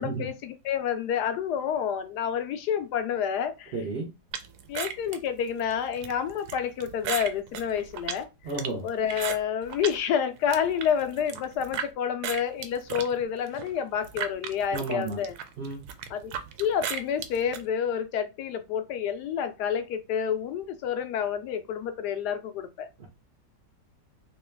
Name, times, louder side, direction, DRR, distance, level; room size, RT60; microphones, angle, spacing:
voice 1, 0.0-3.8 4.7-8.3 8.8-15.3 16.1-16.3 16.6-22.9, left 8 dB, 75° left, 1.1 m, -29 dB
voice 2, 3.7-4.1 8.4-8.8 14.7-15.2 15.6-15.8 23.0-23.1, right 3 dB, 55° right, 0.8 m, -32 dB
sound 1, 4.3-10.0 10.4-11.9 12.2-17.6, right 8 dB, 75° right, 1.0 m, -36 dB
3.0 x 2.8 x 3.3 m
omnidirectional pair, 1.8 m